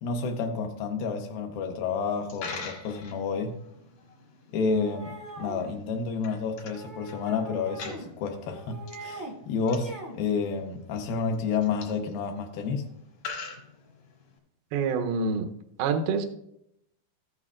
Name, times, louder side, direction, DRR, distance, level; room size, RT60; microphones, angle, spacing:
voice 1, 0.0-3.5 4.5-12.9, left 5 dB, 90° left, 3 dB, 2.0 m, -30 dB
Coin (dropping), 2.1-14.4, left 4 dB, 65° left, 1.6 m, -45 dB
sound 1, 4.7-5.7 6.7-8.1 8.4-9.3 9.6-10.2, right 2 dB, 30° right, 0.3 m, -42 dB
voice 2, 14.7-15.5 15.8-16.3, right 5 dB, 85° right, 4 dB, 2.1 m, -26 dB
14.0 x 8.7 x 2.4 m, 0.76 s
omnidirectional pair, 5.3 m